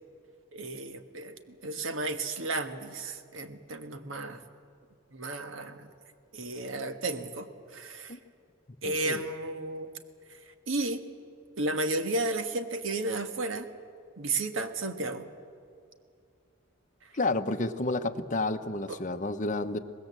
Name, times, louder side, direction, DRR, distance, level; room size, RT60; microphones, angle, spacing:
voice 1, 0.5-4.4 5.1-5.9 6.3-8.2 8.8-9.9 10.7-11.0 11.6-13.7 14.2-15.3 17.0-17.1 18.9-19.0, right 2 dB, 75° right, 8 dB, 1.4 m, -33 dB
voice 2, 8.8-9.2 17.1-19.8, left 2 dB, 40° left, 7 dB, 0.9 m, -30 dB
24.0 x 20.0 x 7.5 m, 2.3 s
head